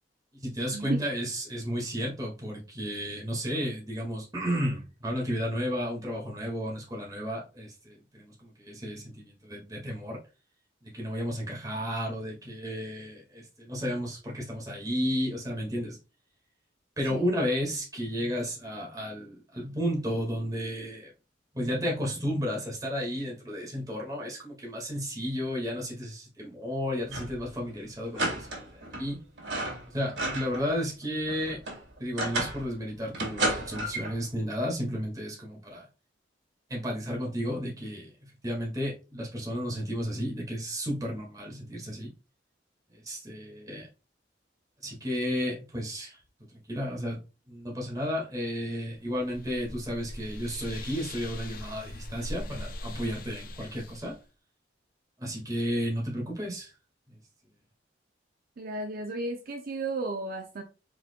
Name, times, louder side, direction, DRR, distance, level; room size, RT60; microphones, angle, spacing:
voice 1, 0.4-10.2 10.8-16.0 17.0-21.1 21.5-29.2 29.9-31.6 32.0-35.9 36.7-42.1 42.9-43.9 44.8-46.2 46.5-47.2 47.5-54.2 55.2-56.7, equal, 20° right, 1.8 m, -33 dB
sound 1, 27.0-27.4 27.7-27.8 28.1-29.1 29.4-30.7 31.0-32.7 33.1-34.2, right 1 dB, 75° right, 2.1 m, -32 dB
sound 2, 48.9-54.2, left 1 dB, 50° left, 0.6 m, -41 dB
voice 2, 58.6-60.6, right 2 dB, 55° right, 0.6 m, -33 dB
4.8 x 4.4 x 2.2 m
head